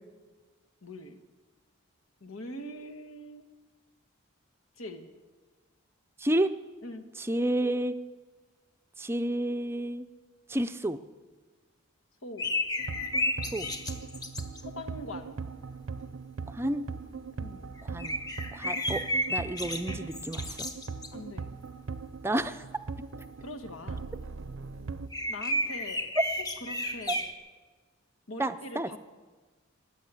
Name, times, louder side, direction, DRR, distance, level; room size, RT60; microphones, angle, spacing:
voice 1, 0.8-1.2 2.2-3.5 4.8-5.1 6.8-7.0 12.2-12.5 14.6-15.4 17.4-17.7 21.1-21.5 23.4-24.1 25.3-26.1 26.4-27.3 28.3-29.0, left 1 dB, 85° left, 6 dB, 1.4 m, -42 dB
voice 2, 6.2-6.5 7.2-8.0 9.0-10.1 10.5-11.0 13.5-13.7 16.5-16.9 17.8-18.2 18.5-19.0 19.3-20.6 22.2-22.6 27.1-27.2 28.4-28.9, right 1 dB, 10° right, 9 dB, 0.5 m, -30 dB
sound 1, 12.4-14.6 17.8-21.1 23.2-23.3 25.1-27.3, left 1 dB, 20° left, 0.9 m, -32 dB
sound 2, 12.8-25.1, right 4 dB, 65° right, 0.6 m, -40 dB
15.0 x 10.0 x 8.3 m, 1.4 s
head